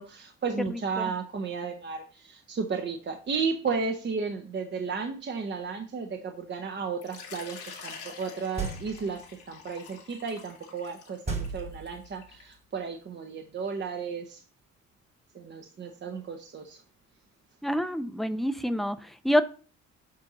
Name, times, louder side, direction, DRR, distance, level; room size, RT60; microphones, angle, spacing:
voice 1, 0.0-9.2 9.5-14.4 15.3-16.8, right 5 dB, 35° right, 0.8 m, -33 dB
voice 2, 0.7-1.1 17.6-19.4, equal, ahead, 0.5 m, -27 dB
Water / Liquid, 7.0-12.5, left 6 dB, 85° left, 1.9 m, -46 dB
sound 1, 8.6-9.2 11.3-12.3, right 4 dB, 20° right, 1.4 m, -34 dB
7.5 x 2.7 x 5.9 m
cardioid pair, 90°, 30 cm